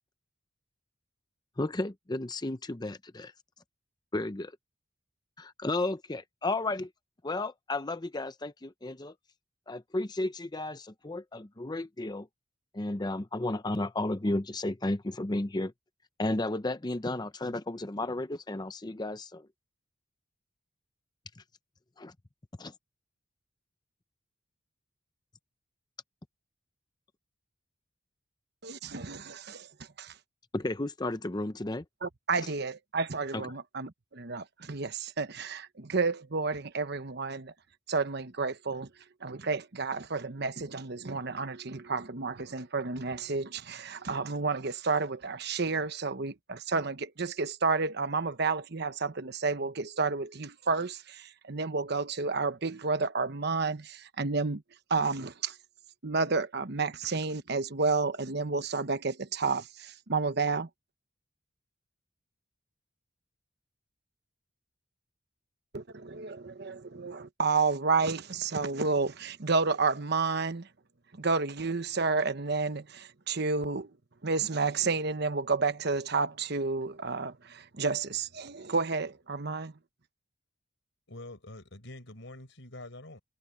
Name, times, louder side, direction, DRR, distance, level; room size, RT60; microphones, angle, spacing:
voice 1, 1.6-3.3 4.1-4.5 5.4-6.9 7.2-9.1 9.7-12.3 12.7-15.7 16.2-19.5 22.0-22.1 22.6-22.7 30.5-31.8 33.3-33.5, left 2 dB, 20° left, 0.7 m, -33 dB
voice 2, 28.6-29.7 30.0-30.1 32.0-37.5 37.9-38.9 39.2-54.6 54.9-55.6 56.0-60.7 65.7-70.7 71.1-73.9 74.2-79.7, right 4 dB, 55° right, 1.1 m, -31 dB
voice 3, 81.1-83.2, left 1 dB, 70° left, 4.8 m, -46 dB
head